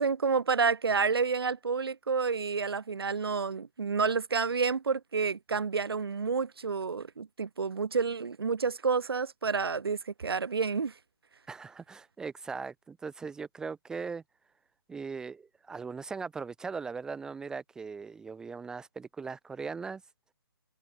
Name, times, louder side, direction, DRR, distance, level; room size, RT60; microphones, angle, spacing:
voice 1, 0.0-10.9, right 5 dB, 80° right, 0.5 m, -29 dB
voice 2, 11.5-14.2 14.9-20.0, right 5 dB, 5° right, 0.6 m, -39 dB
figure-of-eight pair, 145°, 13 cm